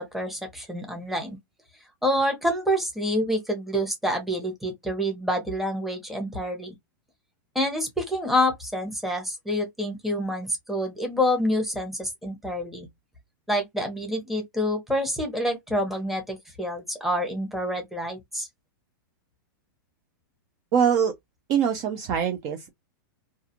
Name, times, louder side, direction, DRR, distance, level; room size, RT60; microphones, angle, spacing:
voice 1, 0.0-1.4 2.0-6.7 7.5-12.9 13.5-18.5, equal, ahead, 0.8 m, -27 dB
voice 2, 20.7-21.1 21.5-22.7, right 8 dB, 35° right, 0.4 m, -23 dB
2.5 x 2.3 x 2.8 m
supercardioid pair, 150°, 12 cm